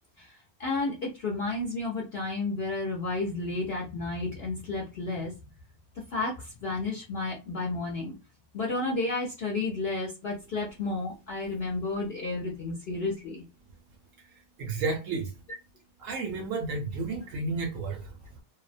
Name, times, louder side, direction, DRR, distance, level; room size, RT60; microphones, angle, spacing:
voice 1, 0.2-5.4 6.1-8.1 8.5-13.4, left 3 dB, 60° left, 0.6 m, -32 dB
voice 2, 14.6-15.3 16.0-18.4, right 3 dB, 70° right, 0.9 m, -32 dB
2.7 x 2.0 x 2.5 m
omnidirectional pair, 1.7 m